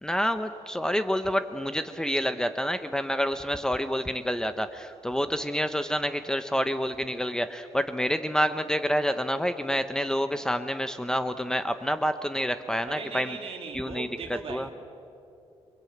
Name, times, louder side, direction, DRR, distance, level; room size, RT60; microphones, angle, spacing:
voice 1, 0.0-13.4 13.7-14.7, equal, 5° left, 9 dB, 0.8 m, -28 dB
voice 2, 12.8-14.7, right 5 dB, 55° right, 3 dB, 3.0 m, -38 dB
29.0 x 22.0 x 8.7 m, 2.7 s
wide cardioid pair, 155°, 11 cm